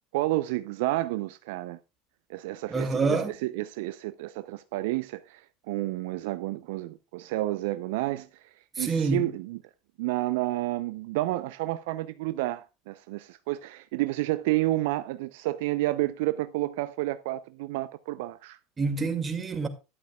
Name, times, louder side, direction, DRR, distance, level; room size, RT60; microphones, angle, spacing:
voice 1, 0.1-1.8 2.3-5.4 5.7-8.3 8.8-9.6 10.0-18.6, right 17 dB, 65° right, 0.5 m, -30 dB
voice 2, 2.7-3.3 8.8-9.3 18.8-19.7, right 4 dB, 25° right, 2.2 m, -27 dB
12.5 x 11.0 x 2.3 m
hypercardioid pair, 75°, 0 cm